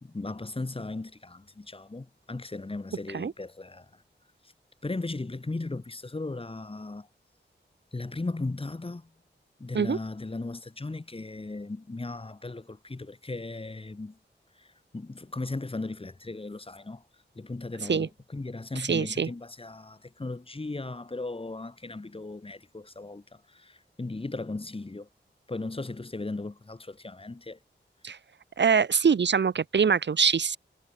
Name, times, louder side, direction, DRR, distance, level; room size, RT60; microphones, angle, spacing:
voice 1, 0.0-4.0 4.8-7.1 7.9-9.1 9.6-14.2 14.6-17.0 17.3-25.1 25.5-27.6, left 2 dB, 30° left, 1.4 m, -37 dB
voice 2, 18.8-19.3 28.0-28.2 28.6-30.6, right 6 dB, 65° right, 0.7 m, -24 dB
wide cardioid pair, 80°, 20 cm